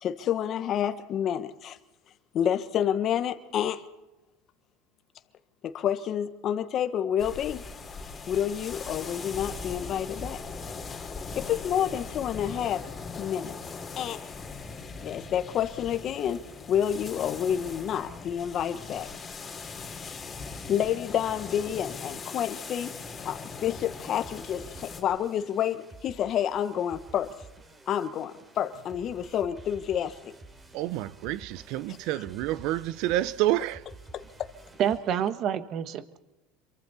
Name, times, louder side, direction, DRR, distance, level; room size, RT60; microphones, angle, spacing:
voice 1, 0.0-1.8 2.3-3.9 5.6-7.6 8.3-10.4 11.3-12.9 13.2-13.6 14.0-14.2 15.0-19.1 20.7-22.9 23.2-27.3 27.9-30.3 34.1-34.5, left 9 dB, 40° left, 1.3 m, -29 dB
sound 1, 7.2-25.0, left 4 dB, 20° left, 3.3 m, -40 dB
sound 2, 23.6-35.0, right 3 dB, 20° right, 3.4 m, -50 dB
voice 2, 30.7-33.8, right 14 dB, 65° right, 0.8 m, -28 dB
voice 3, 34.8-36.2, right 9 dB, 45° right, 1.5 m, -28 dB
27.5 x 23.5 x 4.3 m
supercardioid pair, 125°, 0 cm